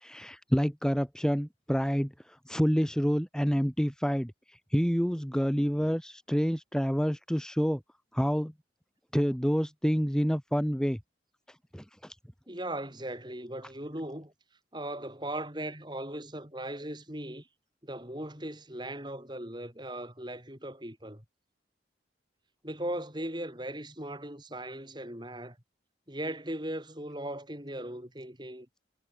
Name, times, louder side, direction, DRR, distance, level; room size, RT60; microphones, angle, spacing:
voice 1, 0.0-7.8 8.1-8.5 9.1-11.0 11.7-12.1, equal, 5° left, 2.9 m, -28 dB
voice 2, 12.5-14.3 14.7-17.5 17.8-21.2 22.6-25.6 26.1-28.7, right 1 dB, 25° right, 7.9 m, -38 dB
head